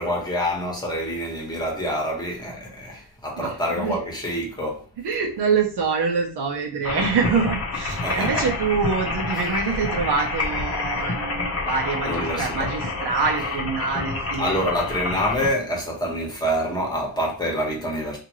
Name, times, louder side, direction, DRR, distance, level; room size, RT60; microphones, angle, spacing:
voice 1, 0.0-4.8 7.9-8.5 12.0-12.7 14.4-18.2, equal, 10° left, 1.0 m, -26 dB
voice 2, 3.4-4.0 5.0-14.5, right 5 dB, 70° right, 0.8 m, -25 dB
sound 1, 6.8-15.5, left 3 dB, 35° left, 0.7 m, -28 dB
2.9 x 2.5 x 2.9 m
wide cardioid pair, 135°, 42 cm